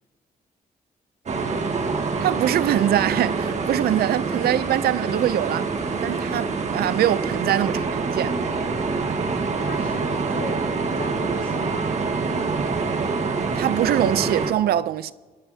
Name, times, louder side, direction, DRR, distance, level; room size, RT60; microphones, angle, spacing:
sound 1, 1.3-14.5, right 4 dB, 50° right, 1.5 m, -26 dB
voice 1, 2.2-8.3 13.6-15.1, right 12 dB, 90° right, 0.5 m, -23 dB
voice 2, 8.9-9.3 9.6-10.6 10.9-11.9, left 7 dB, 65° left, 0.8 m, -38 dB
27.0 x 10.5 x 2.8 m
cardioid pair, 95°, 16 cm